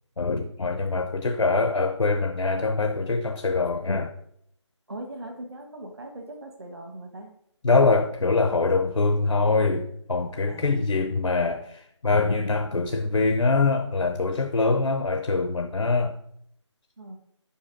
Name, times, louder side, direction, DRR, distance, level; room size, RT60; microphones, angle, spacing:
voice 1, 0.2-4.1 7.6-16.1, left 3 dB, 90° left, 7 dB, 0.7 m, -24 dB
voice 2, 4.9-7.3 10.5-10.8 17.0-17.2, right 1 dB, 55° right, 4 dB, 1.6 m, -40 dB
5.5 x 5.2 x 5.8 m, 0.73 s
figure-of-eight pair, 175°, 16 cm